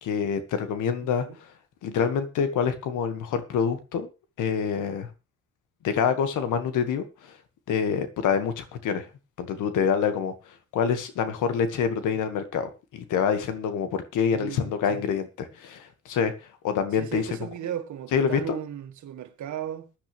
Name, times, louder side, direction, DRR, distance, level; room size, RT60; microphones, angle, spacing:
voice 1, 0.0-1.3 1.8-4.1 4.4-5.1 5.8-7.4 7.7-9.1 9.4-10.3 10.7-16.3 16.6-17.2 18.1-18.6, left 7 dB, 85° left, 1.9 m, -26 dB
voice 2, 1.0-1.4 14.3-15.1 16.9-19.9, right 10 dB, 70° right, 1.8 m, -36 dB
15.5 x 10.0 x 3.4 m
cardioid pair, 90°, 30 cm